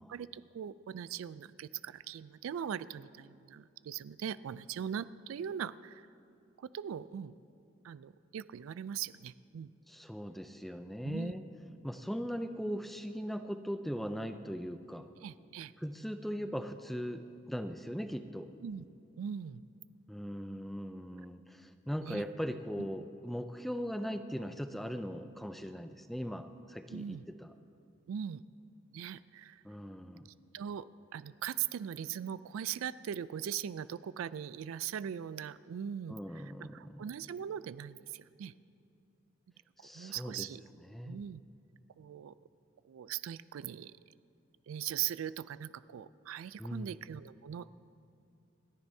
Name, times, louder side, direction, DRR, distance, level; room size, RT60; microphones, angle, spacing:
voice 1, 0.1-6.0 6.6-7.4 7.8-9.7 11.0-11.4 15.2-15.7 18.6-18.8 19.2-19.6 22.0-22.2 26.9-27.2 28.1-28.4 28.9-29.6 30.5-30.9 31.1-38.5 39.9-40.6 41.0-41.4 42.0-42.3 42.9-43.9 44.7-47.9, right 9 dB, 85° right, 17 dB, 0.3 m, -40 dB
voice 2, 9.9-11.4 11.8-15.1 15.8-18.5 20.1-27.5 29.6-30.3 36.1-37.0 39.8-40.5 40.8-41.2 46.6-47.0, equal, ahead, 8 dB, 0.4 m, -39 dB
28.5 x 10.0 x 2.7 m, 2.6 s
head